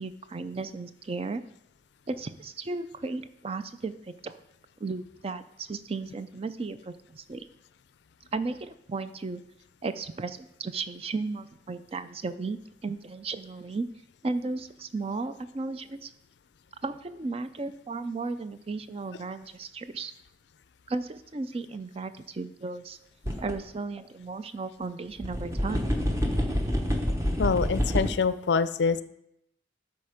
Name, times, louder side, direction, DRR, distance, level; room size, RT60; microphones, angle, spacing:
voice 1, 0.0-1.4 2.1-4.3 4.8-7.5 8.3-9.4 9.8-13.9 14.2-16.1 16.8-20.1 20.9-23.0 23.4-25.8, right 3 dB, 30° right, 11 dB, 0.4 m, -35 dB
sound 1, 23.3-23.5 24.0-24.1 25.2-28.1, equal, 15° right, 0.9 m, -27 dB
voice 2, 27.4-29.0, left 5 dB, 65° left, 14 dB, 0.4 m, -25 dB
12.5 x 4.2 x 5.0 m, 0.79 s
head